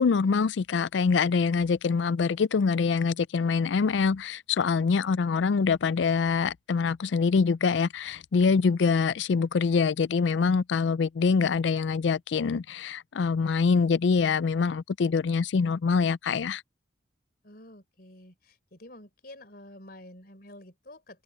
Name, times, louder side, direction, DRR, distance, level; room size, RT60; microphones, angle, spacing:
voice 1, 0.0-16.6, left 5 dB, 75° left, 0.4 m, -25 dB
voice 2, 4.7-5.2 17.4-21.2, left 1 dB, 50° left, 4.0 m, -49 dB
open air
head